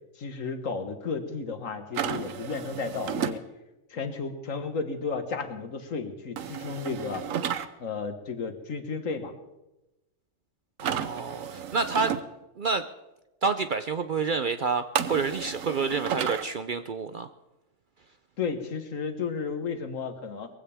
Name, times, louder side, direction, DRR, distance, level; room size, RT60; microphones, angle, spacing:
voice 1, 0.2-3.4 3.9-7.2 7.8-9.3 18.4-20.5, left 5 dB, 75° left, 7 dB, 1.8 m, -33 dB
sound 1, 1.9-3.4 6.4-7.7 10.8-12.2 14.9-16.4, right 8 dB, 75° right, 1.2 m, -32 dB
voice 2, 10.8-12.1 12.6-12.9 13.4-17.3, right 4 dB, 55° right, 9 dB, 0.6 m, -28 dB
21.5 x 15.5 x 3.5 m, 0.99 s
omnidirectional pair, 1.4 m